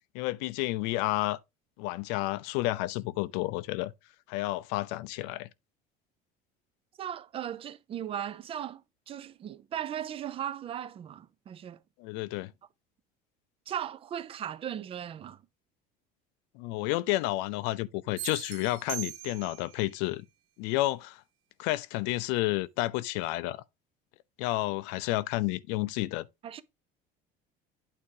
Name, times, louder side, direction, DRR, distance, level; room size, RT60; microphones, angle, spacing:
voice 1, 0.1-1.4 1.8-3.9 4.3-5.5 12.0-12.5 16.6-20.2 20.6-21.2 21.6-23.6 24.4-26.3, left 18 dB, 80° left, 0.6 m, -31 dB
voice 2, 7.0-8.8 9.1-11.8 13.7-15.4 26.4-26.6, right 10 dB, 30° right, 0.6 m, -37 dB
sound 1, 18.2-19.8, right 14 dB, 80° right, 1.3 m, -40 dB
8.8 x 3.6 x 4.8 m
cardioid pair, 150°, 19 cm